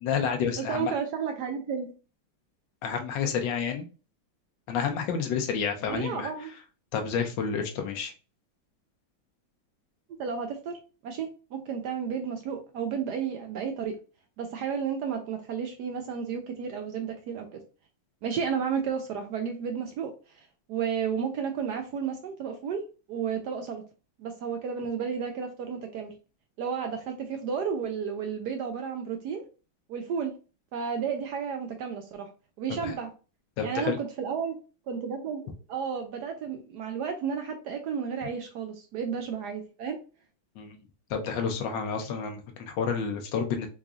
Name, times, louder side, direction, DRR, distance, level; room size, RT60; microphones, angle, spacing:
voice 1, 0.0-0.9 2.8-3.8 4.7-6.3 6.9-8.1 32.8-32.9 33.6-34.0 40.6-40.8 41.1-43.7, left 6 dB, 75° left, 5 dB, 1.3 m, -29 dB
voice 2, 0.6-1.9 5.9-6.5 10.2-13.9 14.4-17.6 18.2-22.8 23.1-23.8 24.2-26.1 26.6-29.4 29.9-30.3 30.7-32.3 32.6-33.1 33.6-34.6 34.9-40.0, right 7 dB, 75° right, 5 dB, 1.0 m, -32 dB
4.7 x 2.6 x 2.3 m, 0.33 s
omnidirectional pair, 2.1 m